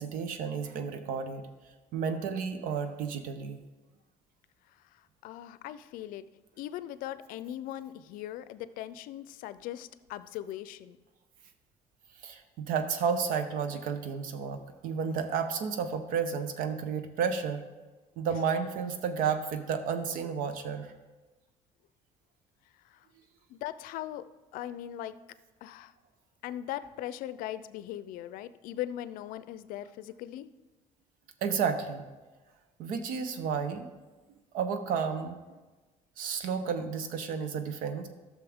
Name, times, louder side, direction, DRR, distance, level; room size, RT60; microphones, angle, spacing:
voice 1, 0.0-1.5 1.9-3.6 12.2-17.6 18.2-20.9 31.4-32.1 32.8-33.9 34.5-35.4 36.2-38.1, right 6 dB, 75° right, 9 dB, 0.9 m, -32 dB
voice 2, 5.2-6.2 6.6-11.0 23.5-24.2 24.5-25.1 25.6-25.9 26.4-30.5, left 12 dB, 80° left, 14 dB, 0.5 m, -39 dB
13.5 x 6.5 x 3.6 m, 1.2 s
cardioid pair, 140°, 14 cm